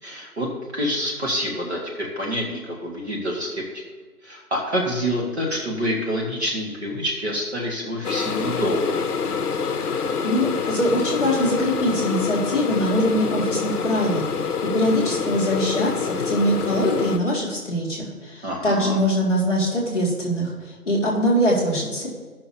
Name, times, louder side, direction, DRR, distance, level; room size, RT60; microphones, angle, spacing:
voice 1, 0.0-3.6 4.2-8.8 18.4-19.0, equal, 45° right, -2 dB, 1.4 m, -27 dB
sound 1, 8.0-17.2, left 5 dB, 70° left, 0.7 m, -26 dB
voice 2, 10.2-14.3 14.7-20.5 20.8-22.1, equal, 5° left, -16 dB, 1.1 m, -22 dB
14.5 x 5.8 x 2.7 m, 1.4 s
figure-of-eight pair, 165°, 47 cm